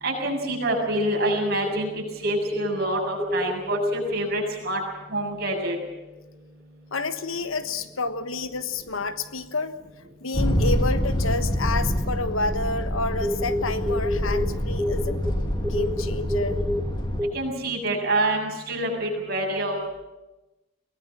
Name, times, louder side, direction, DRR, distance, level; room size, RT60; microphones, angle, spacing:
voice 1, 0.0-4.8 5.1-5.8 17.3-19.9, right 1 dB, 50° right, 0 dB, 7.1 m, -27 dB
sound 1, 0.9-1.9 2.2-2.8 3.2-4.1 5.9-6.0 8.3-8.4 11.3-11.4 11.6-12.2 12.5-12.7 13.2-14.5 14.7-16.8 17.2-17.3, left 1 dB, 10° right, 1.3 m, -27 dB
voice 2, 6.9-9.8 10.2-15.2 15.7-16.6, left 3 dB, 75° left, 10 dB, 1.3 m, -29 dB
sound 2, 10.3-17.2, equal, 20° left, 2.2 m, -26 dB
23.0 x 19.0 x 7.3 m, 1.0 s
head